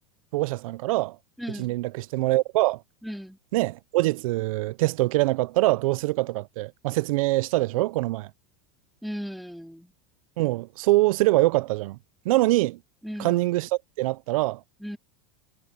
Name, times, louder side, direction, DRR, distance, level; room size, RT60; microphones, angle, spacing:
voice 1, 0.3-1.2 1.5-2.8 3.5-8.3 10.4-12.0 12.3-12.8 13.2-14.6, right 19 dB, 75° right, 0.5 m, -24 dB
voice 2, 1.4-1.8 3.0-3.4 9.0-9.9 13.0-13.4 14.8-15.0, equal, ahead, 2.6 m, -36 dB
supercardioid pair, 125°, 18 cm